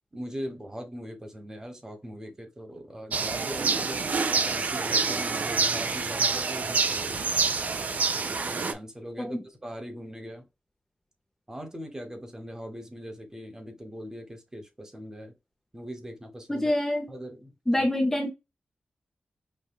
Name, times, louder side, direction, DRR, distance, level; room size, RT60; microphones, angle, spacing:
voice 1, 0.1-7.3 8.3-10.5 11.5-15.3 15.7-16.7 17.1-17.5 17.8-17.9, equal, 20° right, 1.1 m, -40 dB
sound 1, 3.1-8.7, right 4 dB, 55° right, 0.4 m, -27 dB
voice 2, 16.5-17.1 17.7-18.3, left 1 dB, 10° left, 0.5 m, -26 dB
5.5 x 2.2 x 2.2 m
wide cardioid pair, 95°, 3 cm